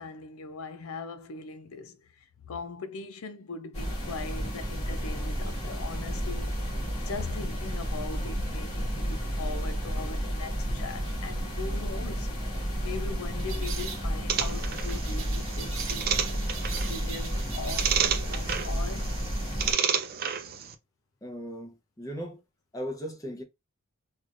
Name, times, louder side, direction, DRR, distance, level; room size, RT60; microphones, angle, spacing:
voice 1, 0.0-6.7 7.0-12.3 12.8-16.1 16.8-19.2, left 4 dB, 80° left, 0.5 m, -40 dB
sound 1, 3.7-19.7, equal, 35° left, 2.4 m, -32 dB
sound 2, 11.0-11.2 13.4-14.1 14.7-18.1, right 6 dB, 65° right, 0.9 m, -41 dB
sound 3, 14.3-20.7, right 8 dB, 45° right, 0.5 m, -31 dB
voice 2, 21.2-22.4 22.7-23.4, equal, 15° left, 0.8 m, -37 dB
4.7 x 2.4 x 2.6 m
head